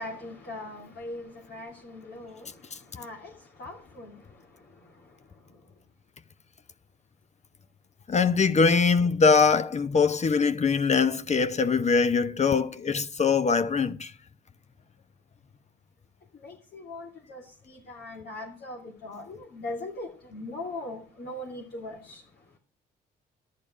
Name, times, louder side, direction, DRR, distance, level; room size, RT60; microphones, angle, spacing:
voice 1, 0.0-5.6 16.3-22.4, left 2 dB, 55° left, 2.8 m, -41 dB
voice 2, 8.1-14.1, left 5 dB, 35° left, 0.8 m, -22 dB
12.0 x 10.5 x 6.2 m
cardioid pair, 90°, 20 cm